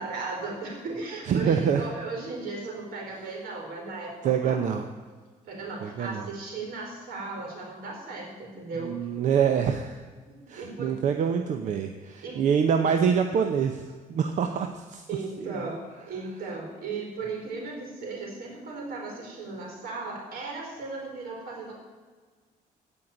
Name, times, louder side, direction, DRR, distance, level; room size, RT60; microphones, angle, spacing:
voice 1, 0.0-4.6 5.4-8.9 10.3-11.0 12.2-12.4 15.1-15.8 16.1-21.7, right 3 dB, 75° right, 0 dB, 4.6 m, -36 dB
voice 2, 1.3-1.8 4.2-4.9 5.8-6.3 8.8-10.0 10.5-15.0 15.4-15.7, right 7 dB, 55° right, 6 dB, 0.8 m, -26 dB
16.0 x 5.7 x 8.8 m, 1.5 s
cardioid pair, 180°, 15 cm